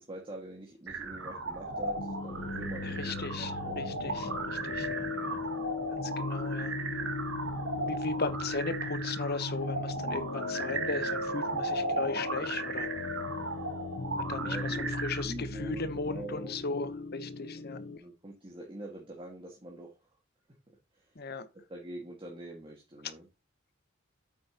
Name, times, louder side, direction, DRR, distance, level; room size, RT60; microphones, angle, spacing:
voice 1, 0.0-3.8 8.1-8.2 14.4-16.6 17.9-20.1 20.7-21.2 21.7-23.3, right 1 dB, 25° right, 1.9 m, -45 dB
sound 1, 0.9-15.2, right 3 dB, 70° right, 2.1 m, -36 dB
sound 2, 2.0-18.0, left 3 dB, 85° left, 1.0 m, -37 dB
voice 2, 2.8-5.6 5.9-6.7 7.8-12.9 14.2-17.8 21.2-21.5, left 3 dB, 50° left, 1.0 m, -37 dB
8.7 x 8.4 x 2.9 m
head